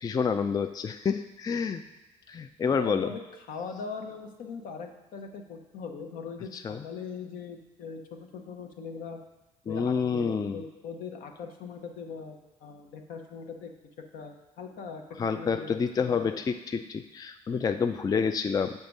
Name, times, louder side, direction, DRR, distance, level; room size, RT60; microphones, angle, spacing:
voice 1, 0.0-1.8 2.3-3.1 6.5-6.9 9.7-10.6 15.2-18.7, left 6 dB, 25° left, 8 dB, 0.3 m, -28 dB
voice 2, 2.7-3.2 3.5-9.2 9.6-13.7 14.1-15.0 15.3-15.8 16.1-16.4, left 5 dB, 70° left, 4 dB, 0.8 m, -40 dB
6.6 x 3.6 x 5.3 m, 1.1 s
supercardioid pair, 70°, 15 cm